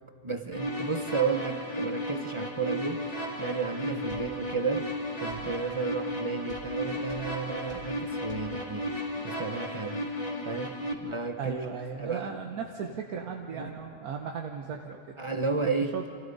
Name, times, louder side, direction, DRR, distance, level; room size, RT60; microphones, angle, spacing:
voice 1, 0.2-4.9 5.2-10.0 10.5-12.4 13.5-13.7 15.2-16.0, right 4 dB, 30° right, 7 dB, 0.7 m, -33 dB
sound 1, 0.5-10.9, equal, 25° left, 2.2 m, -34 dB
sound 2, 4.1-4.3 5.3-5.5 6.5-6.7 7.1-7.3 7.7-7.9 8.3-8.5, right 1 dB, 55° right, 3.5 m, -48 dB
voice 2, 11.4-15.1 15.6-16.1, right 6 dB, 85° right, 2 dB, 1.5 m, -36 dB
29.0 x 26.5 x 4.1 m, 2.4 s
omnidirectional pair, 1.5 m